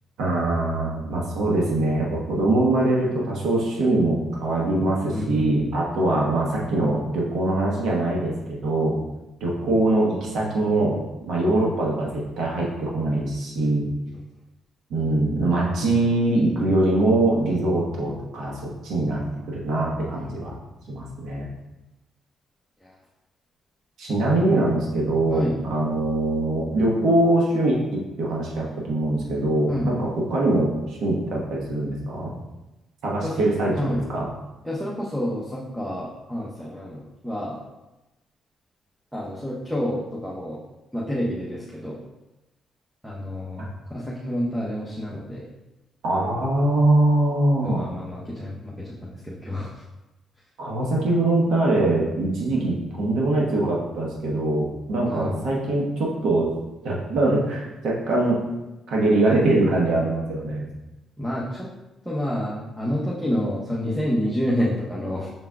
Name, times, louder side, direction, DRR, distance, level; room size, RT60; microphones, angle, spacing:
voice 1, 0.2-8.9 9.4-11.0 11.3-13.9 14.9-20.5 20.9-21.5 24.0-25.4 25.7-32.3 33.0-34.3 46.0-47.8 50.6-56.5 56.8-58.4 58.9-60.6, right 2 dB, 75° right, -3 dB, 1.1 m, -23 dB
voice 2, 5.1-5.5 22.8-23.0 25.3-25.6 29.7-30.0 33.2-34.1 34.6-37.6 39.1-40.6 40.9-42.0 43.0-45.5 47.6-49.8 55.1-55.4 61.2-61.6 62.0-65.3, equal, ahead, -5 dB, 0.8 m, -29 dB
5.9 x 3.6 x 2.3 m, 1.0 s
cardioid pair, 90°, 0 cm